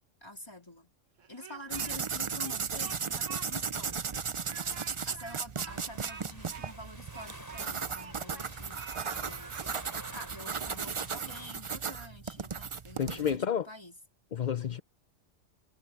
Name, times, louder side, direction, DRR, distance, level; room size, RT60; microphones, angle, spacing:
voice 1, 0.2-0.9 1.3-4.3 5.1-9.6 10.1-14.0, left 1 dB, 20° left, 3.6 m, -48 dB
Speech, 1.2-2.1 2.4-3.5 3.8-3.9 4.4-8.5 8.7-9.7, right 6 dB, 90° right, 1.6 m, -48 dB
sound 1, 1.7-13.4, right 6 dB, 40° right, 0.4 m, -36 dB
sound 2, 5.7-11.5, equal, 15° right, 5.6 m, -50 dB
voice 2, 13.0-13.7 14.3-14.8, left 8 dB, 45° left, 0.7 m, -30 dB
omnidirectional pair, 1.3 m